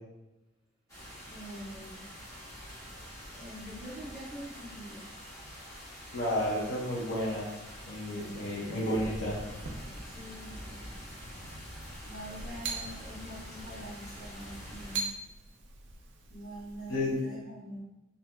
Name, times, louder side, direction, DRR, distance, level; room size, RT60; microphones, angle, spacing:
sound 1, 0.9-15.0, equal, 15° left, 0.9 m, -46 dB
voice 1, 1.3-2.1 3.4-5.1 8.2-8.8 10.1-10.7 12.0-15.2 16.3-17.8, equal, ahead, -12 dB, 1.2 m, -45 dB
voice 2, 6.1-7.5 7.9-9.4 16.9-17.1, left 1 dB, 65° left, -5 dB, 0.7 m, -31 dB
sound 2, 9.5-17.2, right 3 dB, 60° right, 0.4 m, -43 dB
2.7 x 2.5 x 2.2 m, 0.96 s
head